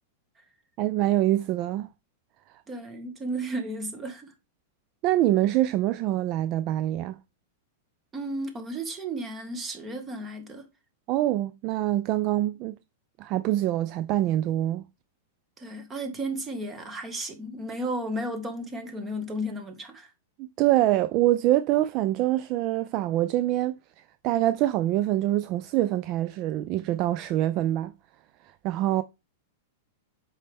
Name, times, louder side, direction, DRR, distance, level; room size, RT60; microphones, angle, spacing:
voice 1, 0.8-1.9 5.0-7.2 11.1-12.8 13.2-14.8 20.4-23.7 24.2-27.9 28.6-29.0, right 14 dB, 40° right, 0.4 m, -25 dB
voice 2, 2.7-4.3 8.1-10.6 15.6-20.1, right 1 dB, 20° right, 1.8 m, -33 dB
7.3 x 5.6 x 3.5 m
supercardioid pair, 140°, 0 cm